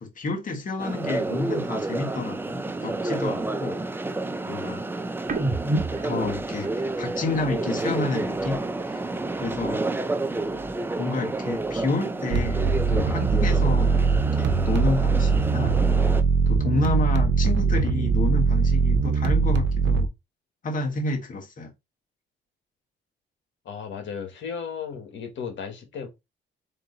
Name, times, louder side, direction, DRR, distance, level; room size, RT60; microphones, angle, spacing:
voice 1, 0.0-3.8 4.5-4.8 6.0-8.6 8.8-9.0 9.4-9.8 11.0-13.9 14.3-15.8 16.5-20.1 20.6-21.7, left 3 dB, 40° left, 1.4 m, -29 dB
sound 1, 0.8-16.2, right 2 dB, 10° right, 0.4 m, -30 dB
sound 2, 5.2-8.8 9.1-11.0 11.2-13.1 13.5-15.3, right 2 dB, 40° right, 1.1 m, -36 dB
sound 3, 12.3-20.1, right 5 dB, 70° right, 0.6 m, -21 dB
voice 2, 23.6-26.1, left 6 dB, 70° left, 1.5 m, -35 dB
3.6 x 2.9 x 3.8 m
cardioid pair, 90°, 20 cm